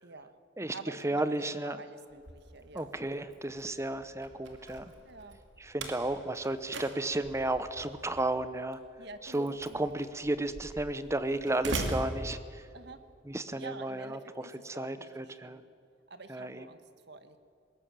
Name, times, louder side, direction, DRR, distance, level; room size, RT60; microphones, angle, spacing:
voice 1, 0.0-0.3 0.7-2.9 5.0-5.4 9.0-9.9 12.7-13.0 13.5-15.6 16.1-16.8 17.1-17.4, right 3 dB, 65° right, 10 dB, 1.5 m, -48 dB
voice 2, 1.0-1.8 2.7-4.9 5.6-8.8 9.3-12.6 13.3-15.6 16.3-16.7, right 1 dB, 15° right, 12 dB, 0.9 m, -33 dB
Slam, 2.1-13.0, right 2 dB, 85° right, 2.5 m, -42 dB
21.0 x 18.0 x 7.6 m, 2.4 s
head